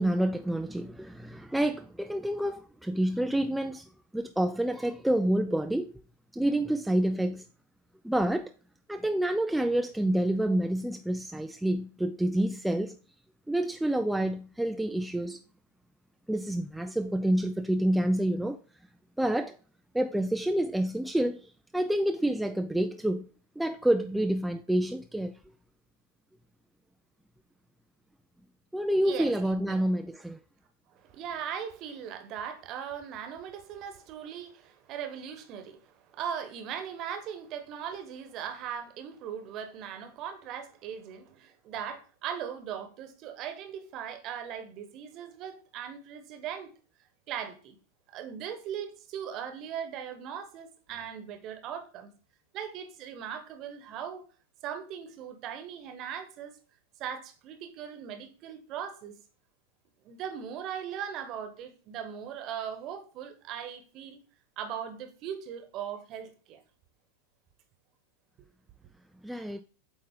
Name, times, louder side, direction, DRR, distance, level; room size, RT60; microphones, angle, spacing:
voice 1, 0.0-3.9 4.1-5.9 6.3-7.4 8.0-8.5 8.9-13.0 13.5-15.4 16.3-18.6 19.2-19.6 19.9-23.3 23.6-25.3 28.7-30.4 69.2-69.6, right 1 dB, 5° right, 0.4 m, -28 dB
voice 2, 29.0-29.9 30.9-46.7 47.3-47.8 48.1-52.1 52.5-54.2 54.6-56.5 57.0-59.2 60.0-64.2 64.6-66.6, right 8 dB, 35° right, 1.1 m, -39 dB
8.3 x 3.6 x 3.7 m
figure-of-eight pair, 90°, 0 cm